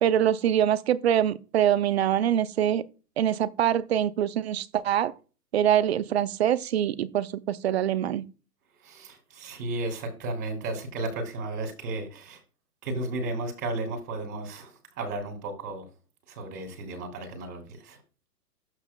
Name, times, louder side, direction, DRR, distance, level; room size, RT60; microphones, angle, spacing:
voice 1, 0.0-2.8 3.2-5.1 5.5-8.3, right 10 dB, 40° right, 0.4 m, -24 dB
voice 2, 8.8-12.4 12.8-15.9 16.3-18.0, right 2 dB, 65° right, 3.1 m, -34 dB
13.0 x 5.8 x 2.3 m
hypercardioid pair, 140°, 50 cm